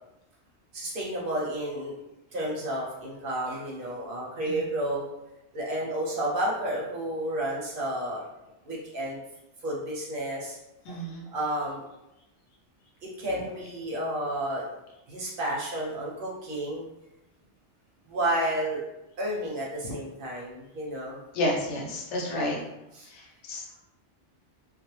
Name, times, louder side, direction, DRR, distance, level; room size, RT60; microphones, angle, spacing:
voice 1, 0.7-1.9 2.3-5.1 5.5-8.3 8.6-9.2 9.6-10.6 10.9-11.0 11.3-11.8 13.0-14.6 15.1-16.9 18.1-18.8 19.2-21.2 22.3-22.5 22.9-23.1, right 1 dB, 55° right, -4 dB, 0.7 m, -31 dB
voice 2, 10.8-11.2 21.3-22.6 23.1-23.8, left 1 dB, 80° left, -2 dB, 0.9 m, -31 dB
2.4 x 2.0 x 2.9 m, 0.92 s
omnidirectional pair, 1.2 m